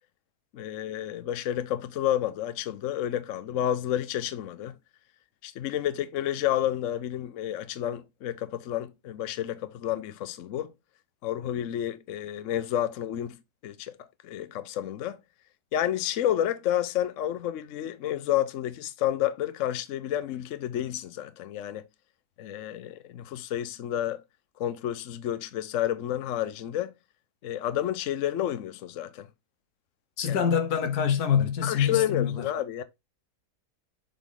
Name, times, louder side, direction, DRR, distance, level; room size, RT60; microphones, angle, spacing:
voice 1, 0.5-4.7 5.4-10.7 11.2-13.4 13.6-13.9 14.2-15.2 15.7-21.8 22.4-24.2 24.6-26.9 27.4-29.3 30.3-30.4 31.6-32.8, left 11 dB, 60° left, 0.9 m, -30 dB
voice 2, 30.2-32.5, left 7 dB, 80° left, 1.4 m, -25 dB
7.2 x 3.9 x 3.5 m
omnidirectional pair, 1.7 m